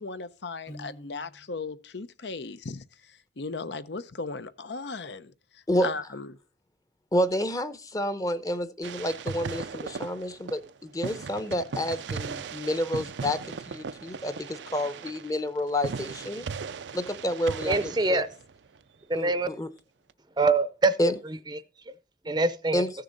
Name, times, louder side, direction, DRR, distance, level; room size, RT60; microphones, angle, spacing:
voice 1, 0.0-6.4, left 4 dB, 75° left, 0.8 m, -37 dB
Piano, 0.7-1.7, equal, 40° left, 1.5 m, -47 dB
voice 2, 7.1-16.5 16.9-18.2 19.1-19.7 21.0-21.1 22.7-22.9, left 1 dB, 20° left, 0.8 m, -29 dB
sound 1, 8.8-10.7 11.0-18.8, right 5 dB, 85° right, 0.5 m, -37 dB
voice 3, 17.7-18.3 19.1-19.5 20.4-21.0 21.2-21.6 22.2-22.8, right 3 dB, 25° right, 0.6 m, -24 dB
15.0 x 6.8 x 4.0 m
head